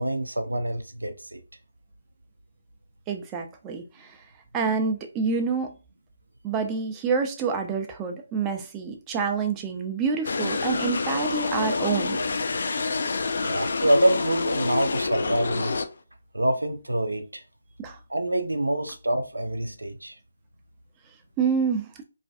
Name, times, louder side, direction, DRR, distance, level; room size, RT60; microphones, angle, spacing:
voice 1, 0.0-1.4 13.4-15.8 16.3-17.4 18.1-20.2, right 1 dB, 85° right, 0.4 m, -26 dB
voice 2, 3.1-4.2 4.5-5.7 6.4-12.2 17.8-18.0 21.4-21.9, right 5 dB, 15° right, 0.4 m, -27 dB
sound 1, 10.2-15.9, left 4 dB, 60° left, 0.3 m, -27 dB
2.4 x 2.2 x 2.5 m
figure-of-eight pair, 150°, 0 cm